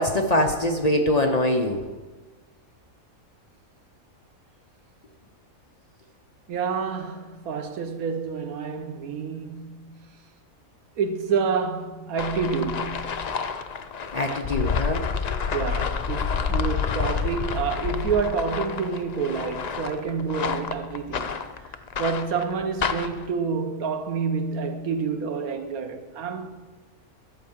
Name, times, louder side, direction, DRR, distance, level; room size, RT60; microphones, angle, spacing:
voice 1, 0.0-1.8 14.1-15.1, left 1 dB, 40° left, 0.6 m, -23 dB
voice 2, 6.5-10.1 11.0-13.4 15.5-26.5, right 5 dB, 90° right, 1.3 m, -28 dB
sound 1, 12.2-23.3, left 6 dB, 90° left, 0.3 m, -29 dB
11.5 x 4.7 x 7.2 m
omnidirectional pair, 1.5 m